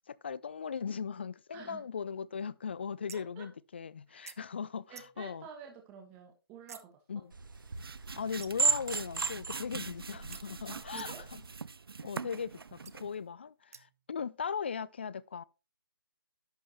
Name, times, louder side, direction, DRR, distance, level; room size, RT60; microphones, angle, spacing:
voice 1, 0.1-5.5 7.1-7.3 8.2-11.4 12.0-15.4, left 6 dB, 30° left, 0.3 m, -38 dB
voice 2, 3.1-3.5 4.1-4.3 4.9-7.0 9.7-9.8 10.7-11.2, right 7 dB, 15° right, 1.5 m, -50 dB
sound 1, 3.1-3.4 4.3-4.4 4.9-5.3 6.7-6.9 8.4-8.8 10.3-10.4 10.9-11.3 12.8-12.9 13.7-14.1, right 6 dB, 40° right, 0.7 m, -50 dB
sound 2, 7.3-11.6, right 4 dB, 60° right, 1.0 m, -35 dB
sound 3, 7.4-13.2, right 5 dB, 75° right, 0.5 m, -44 dB
11.0 x 7.7 x 3.0 m
figure-of-eight pair, 155°, 12 cm